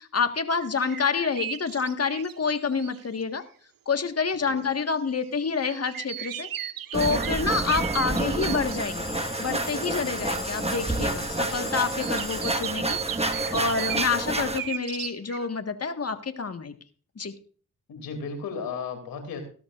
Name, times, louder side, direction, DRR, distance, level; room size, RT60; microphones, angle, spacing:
voice 1, 0.0-3.4 3.8-6.5 6.9-16.7 17.1-17.3, left 5 dB, 45° left, 8 dB, 1.7 m, -28 dB
sound 1, 0.6-3.2 5.6-8.8 12.0-15.5, right 11 dB, 75° right, 0.9 m, -35 dB
sound 2, 6.9-14.6, right 2 dB, 20° right, 1.6 m, -29 dB
sound 3, 8.6-12.6, left 4 dB, 15° left, 3.7 m, -41 dB
voice 2, 17.9-19.4, left 5 dB, 85° left, 5 dB, 2.9 m, -34 dB
17.0 x 13.0 x 2.6 m, 0.42 s
supercardioid pair, 40°, 34 cm